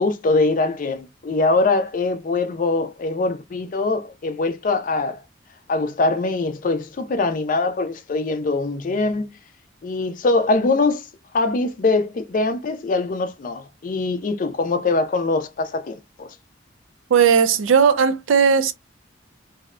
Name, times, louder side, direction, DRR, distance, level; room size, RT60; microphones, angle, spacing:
voice 1, 0.0-5.2 5.7-9.3 9.8-11.1 11.3-16.3, left 3 dB, 40° left, 0.4 m, -22 dB
voice 2, 17.1-18.7, right 6 dB, 75° right, 0.4 m, -16 dB
2.6 x 2.0 x 2.4 m
head